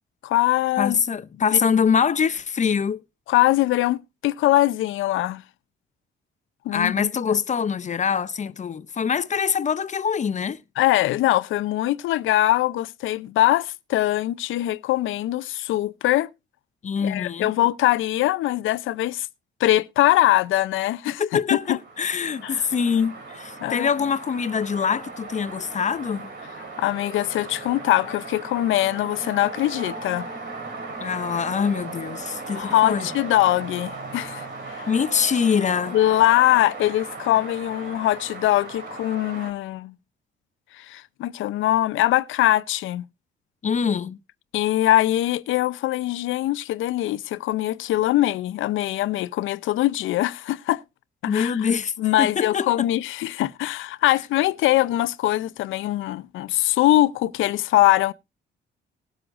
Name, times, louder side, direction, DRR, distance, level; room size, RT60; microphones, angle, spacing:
voice 1, 0.2-1.0 1.5-1.6 3.3-5.4 6.6-7.1 10.8-16.3 17.0-19.3 19.6-21.2 21.7-21.8 23.6-23.9 26.8-30.3 32.6-34.9 35.9-39.9 40.8-43.0 44.5-50.8 51.2-51.6 52.0-58.1, left 15 dB, 80° left, 0.6 m, -22 dB
voice 2, 0.8-3.0 6.7-10.6 16.8-17.5 21.1-26.3 31.0-33.1 34.9-36.0 43.6-44.2 51.3-52.9, left 6 dB, 35° left, 0.6 m, -24 dB
sound 1, 21.6-39.5, right 3 dB, 65° right, 3.0 m, -37 dB
19.5 x 7.8 x 2.5 m
cardioid pair, 90°, 20 cm